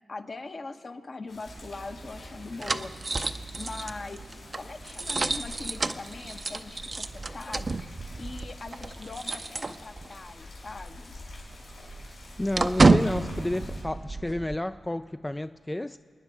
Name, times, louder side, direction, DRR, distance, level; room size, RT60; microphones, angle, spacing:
voice 1, 0.1-2.9 3.5-4.2 4.5-7.8 8.2-11.1, left 3 dB, 50° left, 6 dB, 1.0 m, -41 dB
sound 1, 1.3-13.8, left 2 dB, 85° left, 4.3 m, -48 dB
sound 2, 1.5-10.3 10.6-10.7 11.1-14.6, right 3 dB, 45° right, 0.6 m, -29 dB
voice 2, 12.4-16.0, left 1 dB, 15° left, 10 dB, 0.3 m, -31 dB
28.5 x 9.7 x 4.7 m, 2.4 s
cardioid pair, 45°, 0 cm